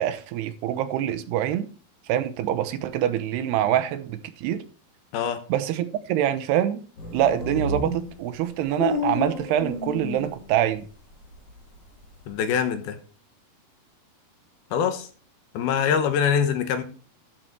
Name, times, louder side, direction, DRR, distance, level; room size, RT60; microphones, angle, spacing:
voice 1, 0.0-1.7 2.1-4.6 5.5-6.8 7.1-10.9, right 11 dB, 90° right, 2.9 m, -25 dB
sound 1, 7.0-10.8 11.1-12.3, left 3 dB, 40° left, 3.6 m, -31 dB
voice 2, 12.3-13.0 14.7-15.1 15.5-16.8, left 7 dB, 75° left, 3.0 m, -24 dB
13.0 x 6.7 x 4.5 m
omnidirectional pair, 4.6 m